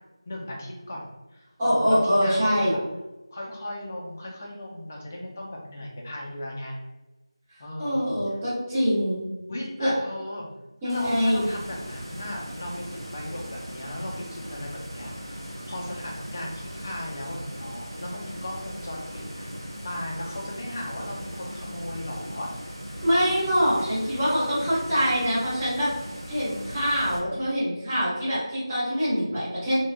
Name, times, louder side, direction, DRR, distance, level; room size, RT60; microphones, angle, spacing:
voice 1, 0.3-2.8 3.3-6.8 7.6-8.0 8.3-8.4 9.5-10.5 10.8-19.5 19.8-22.5, left 1 dB, 25° left, -1 dB, 0.4 m, -37 dB
voice 2, 1.6-2.7 7.8-9.3 9.8-9.9 10.8-11.4 23.0-25.9 26.3-29.8, equal, 15° right, -11 dB, 0.7 m, -24 dB
sound 1, 10.9-27.2, equal, 60° right, 0.7 m, -39 dB
2.5 x 2.1 x 2.3 m, 1.0 s
figure-of-eight pair, 170°, 3 cm